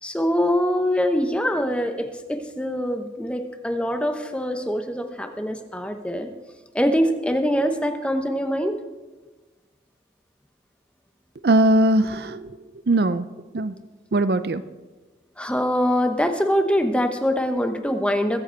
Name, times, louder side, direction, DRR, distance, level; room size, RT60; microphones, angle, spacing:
voice 1, 0.0-6.3 6.7-8.8 15.4-18.4, equal, 5° left, 6 dB, 0.9 m, -23 dB
voice 2, 11.4-12.5 12.9-13.2 13.5-13.7 14.1-14.6, right 1 dB, 60° right, 13 dB, 0.5 m, -20 dB
22.0 x 7.9 x 4.5 m, 1.3 s
head